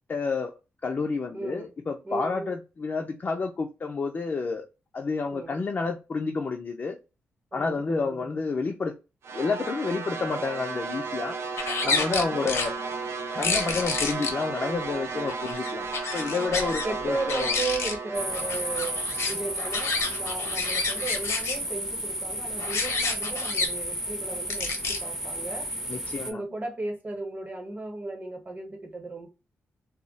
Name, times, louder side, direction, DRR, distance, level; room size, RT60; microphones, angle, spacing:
voice 1, 0.1-0.5 0.8-4.6 4.9-7.0 7.5-8.9 9.3-11.4 11.8-12.7 13.3-17.6 25.9-26.4, left 4 dB, 40° left, 0.4 m, -30 dB
voice 2, 1.3-1.7 2.0-2.5 5.3-5.6 7.5-8.3 11.9-12.6 13.4-13.7 16.3-25.7 26.2-29.3, right 3 dB, 35° right, 0.9 m, -35 dB
sound 1, 9.2-21.5, right 4 dB, 65° right, 0.4 m, -35 dB
sound 2, 11.6-12.7 13.4-14.3 15.3-16.9 17.1-17.9 18.3-21.6 22.6-23.7 24.5-25.0, left 4 dB, 75° left, 0.7 m, -29 dB
sound 3, 18.1-26.3, right 1 dB, 10° right, 0.5 m, -33 dB
2.2 x 2.0 x 3.8 m
wide cardioid pair, 125°, 5 cm